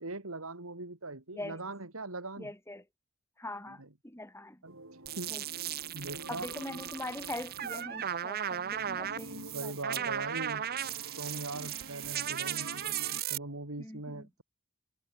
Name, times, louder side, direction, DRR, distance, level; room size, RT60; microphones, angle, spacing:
voice 1, 0.0-2.5 3.8-3.9 4.6-4.8 5.2-5.3 5.9-6.7 9.4-10.6 11.2-12.7 13.3-14.4, right 2 dB, 90° right, 3.1 m, -40 dB
voice 2, 2.4-2.8 3.4-4.6 5.3-5.4 6.3-10.3 11.5-11.7 13.8-14.3, left 1 dB, 15° left, 4.8 m, -43 dB
sound 1, 4.6-13.2, right 2 dB, 70° right, 7.1 m, -48 dB
sound 2, 5.1-13.4, right 10 dB, 45° right, 0.8 m, -36 dB
head